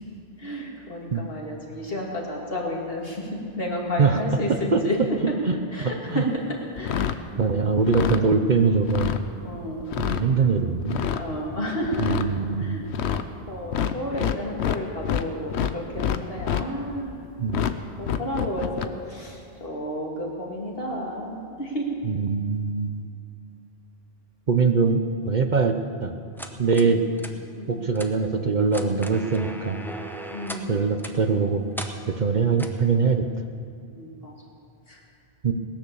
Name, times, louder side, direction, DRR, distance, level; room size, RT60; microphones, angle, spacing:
voice 1, 0.4-5.3 5.7-7.1 9.4-9.9 11.1-12.2 12.6-12.9 13.5-17.2 18.0-22.0 27.6-27.9 30.3-30.9 33.9-34.3 34.9-35.0, equal, 60° left, -2 dB, 2.8 m, -31 dB
voice 2, 5.5-6.2 7.4-9.1 10.0-11.0 12.0-13.0 17.4-17.6 22.0-23.1 24.5-25.7 26.0-26.1 26.6-27.0 27.7-29.8 30.7-31.7 32.1-33.2 35.4-35.5, right 5 dB, 50° right, 6 dB, 0.9 m, -23 dB
sound 1, 6.8-7.2 7.8-8.2 8.8-9.2 9.8-10.2 10.8-11.2 11.8-12.3 12.8-13.3 13.7-15.2 15.5-16.6 17.5-17.7 18.0-18.9, left 9 dB, 90° left, 1.0 m, -27 dB
sound 2, 26.4-26.9 27.2-27.3 28.0-28.1 28.7-30.7 31.0-31.2 31.8-32.0 32.6-32.8, equal, ahead, 0.8 m, -37 dB
18.5 x 10.5 x 7.0 m, 2.5 s
omnidirectional pair, 1.1 m